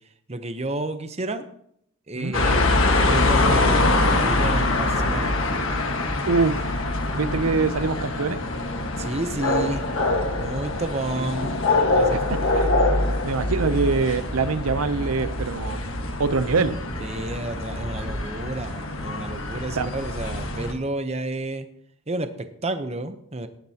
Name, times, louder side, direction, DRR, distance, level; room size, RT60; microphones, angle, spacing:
voice 1, 0.3-1.5 2.1-5.3 9.0-9.8 10.4-11.6 11.9-12.7 17.0-21.7 22.1-23.5, right 2 dB, 30° right, 9 dB, 0.8 m, -31 dB
sound 1, 2.3-20.7, left 2 dB, 65° left, 1.5 m, -24 dB
voice 2, 6.3-6.7 7.1-8.4 11.2-11.3 12.1-12.2 12.5-12.7 13.2-15.8 16.2-16.8 19.8-19.9, right 4 dB, 85° right, 13 dB, 0.6 m, -24 dB
17.5 x 10.5 x 2.9 m, 0.72 s
head